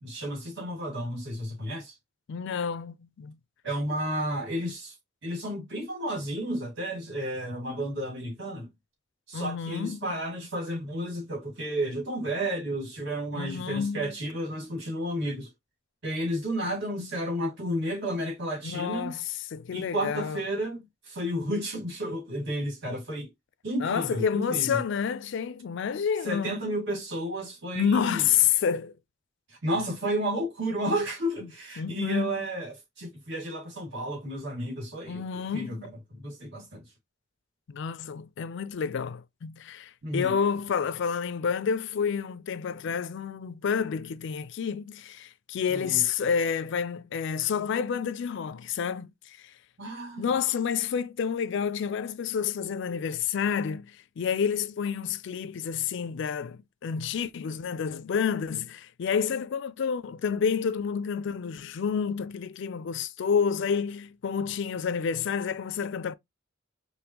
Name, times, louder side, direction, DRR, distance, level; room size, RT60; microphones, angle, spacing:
voice 1, 0.0-1.9 3.6-5.0 5.2-8.7 9.3-15.5 16.0-19.1 19.7-23.3 23.6-24.8 26.2-28.2 29.5-36.8 40.0-40.4 45.7-46.0 49.8-50.3, right 1 dB, 60° right, 2.0 m, -32 dB
voice 2, 2.3-3.4 9.3-10.1 13.3-14.1 18.6-20.4 23.8-26.6 27.7-29.0 29.8-29.9 31.8-32.5 35.1-35.9 37.7-49.5 50.2-66.1, left 7 dB, 65° left, 0.4 m, -29 dB
5.1 x 2.1 x 2.9 m
head